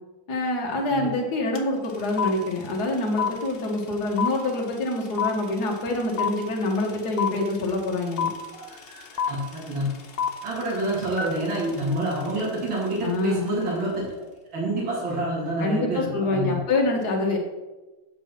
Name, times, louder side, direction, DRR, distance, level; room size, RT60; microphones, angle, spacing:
voice 1, 0.3-8.3 13.0-13.5 15.6-17.4, left 2 dB, 50° left, 0 dB, 2.1 m, -26 dB
sound 1, 1.6-1.7 1.8-13.0, left 7 dB, 65° left, 0.5 m, -30 dB
voice 2, 8.7-9.9 10.4-14.2 14.5-16.6, right 1 dB, 65° right, -6 dB, 3.1 m, -28 dB
7.8 x 6.3 x 5.9 m, 1.1 s
omnidirectional pair, 2.3 m